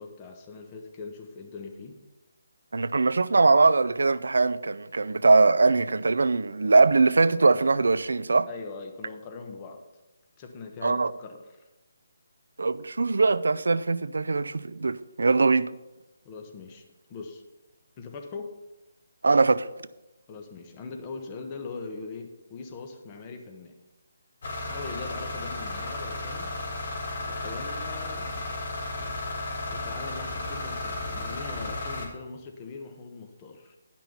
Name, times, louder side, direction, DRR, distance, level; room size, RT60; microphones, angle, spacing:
voice 1, 0.0-2.0 8.5-9.8 10.4-11.6 16.2-16.8 17.1-17.4 18.0-18.5 20.3-23.7 24.7-26.6 27.2-28.3 29.7-33.8, left 4 dB, 25° left, 1.1 m, -41 dB
voice 2, 2.7-8.5 10.8-11.1 12.6-15.7 19.2-19.7, right 3 dB, 75° right, 0.4 m, -21 dB
sound 1, 24.4-32.1, left 2 dB, 55° left, 2.1 m, -34 dB
sound 2, 28.1-32.0, left 3 dB, 20° right, 1.0 m, -47 dB
10.5 x 6.0 x 5.7 m
figure-of-eight pair, 155°, 0 cm